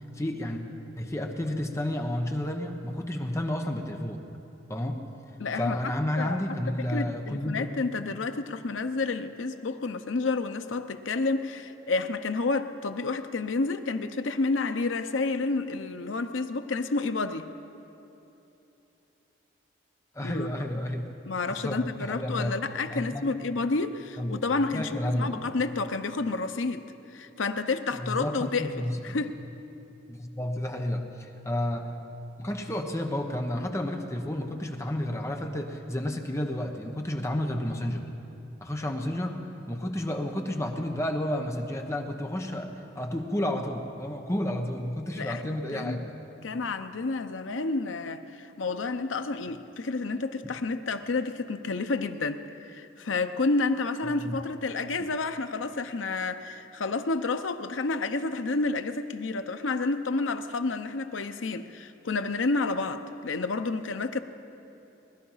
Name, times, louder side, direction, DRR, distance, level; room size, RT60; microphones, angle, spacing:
voice 1, 0.1-0.6 1.0-4.2 4.7-5.0 5.6-7.7 20.1-21.1 21.5-22.6 22.9-23.3 24.2-25.4 27.9-29.2 30.1-32.0 32.4-38.1 38.6-39.4 39.7-46.1 54.2-54.4, left 1 dB, 15° left, 3 dB, 1.0 m, -31 dB
voice 2, 5.4-6.4 6.9-17.5 20.2-20.5 21.3-26.8 27.1-29.4 45.1-46.0 46.4-64.2, left 3 dB, 90° left, 9 dB, 0.7 m, -30 dB
20.0 x 12.0 x 5.7 m, 3.0 s
head